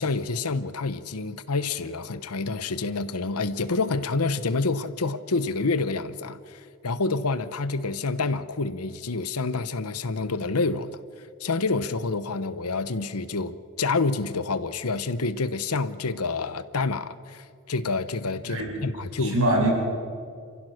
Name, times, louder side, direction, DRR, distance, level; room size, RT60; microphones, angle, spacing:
voice 1, 0.0-11.0 11.4-19.7, left 3 dB, 85° left, 14 dB, 1.0 m, -28 dB
voice 2, 18.5-18.9 19.2-19.7, right 1 dB, 70° right, -2 dB, 7.7 m, -24 dB
28.5 x 15.5 x 6.5 m, 2.2 s
head